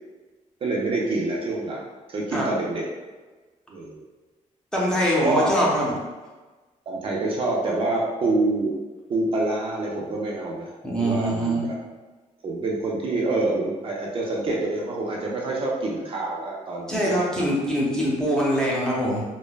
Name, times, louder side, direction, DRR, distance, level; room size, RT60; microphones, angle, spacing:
voice 1, 0.6-1.8 2.1-2.8 3.7-3.9 5.2-5.5 6.9-8.7 9.1-10.7 11.0-11.7 12.4-17.5, right 2 dB, 45° right, -3 dB, 0.4 m, -26 dB
voice 2, 4.7-5.9 10.8-11.6 16.9-19.2, equal, 5° left, -6 dB, 0.5 m, -23 dB
3.2 x 2.0 x 2.2 m, 1.3 s
wide cardioid pair, 160°, 13 cm